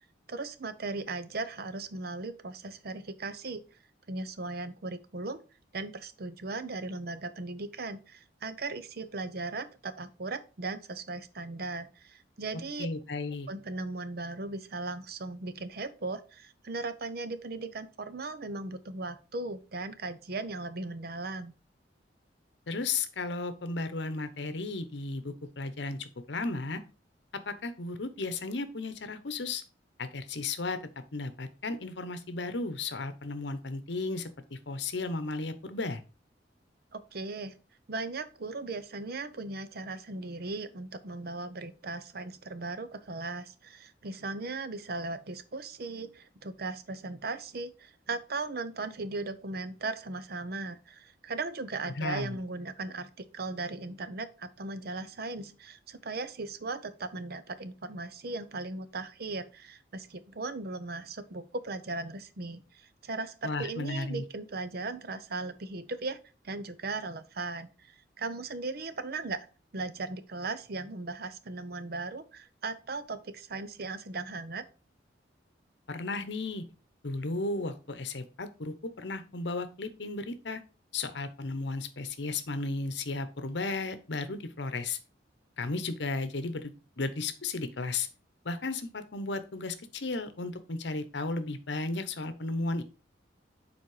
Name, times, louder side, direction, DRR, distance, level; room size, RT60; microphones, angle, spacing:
voice 1, 0.3-3.6 4.1-5.4 5.7-12.9 13.5-21.5 36.9-37.5 37.9-66.2 66.4-69.5 69.7-74.7, right 3 dB, 55° right, 12 dB, 0.7 m, -37 dB
voice 2, 12.8-13.5 22.7-26.8 27.5-29.6 30.0-30.8 31.1-36.0 52.0-52.4 63.4-64.2 75.9-76.6 77.0-80.6 80.9-85.0 85.6-86.7 87.0-88.1 88.4-92.8, left 3 dB, 70° left, 11 dB, 0.9 m, -34 dB
7.2 x 4.3 x 4.8 m, 0.34 s
head